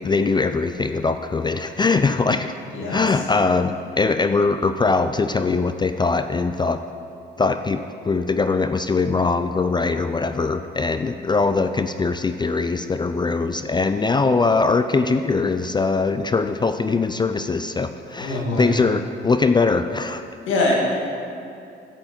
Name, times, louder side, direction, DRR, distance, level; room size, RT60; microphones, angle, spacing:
voice 1, 0.0-2.5 2.9-6.8 7.4-20.3, left 4 dB, 20° left, 9 dB, 0.4 m, -21 dB
voice 2, 2.7-3.2 18.2-18.7 20.5-20.7, left 2 dB, 85° left, -2 dB, 2.0 m, -23 dB
11.5 x 7.7 x 4.5 m, 2.5 s
cardioid pair, 90°, 20 cm